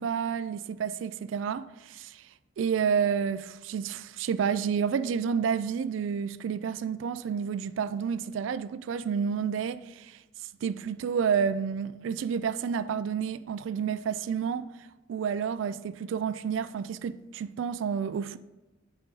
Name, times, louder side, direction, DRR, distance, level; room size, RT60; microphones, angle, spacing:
voice 1, 0.0-2.2 2.6-10.2 10.6-14.7 15.1-18.4, right 7 dB, 80° right, 0.3 m, -30 dB
8.0 x 5.1 x 3.9 m
head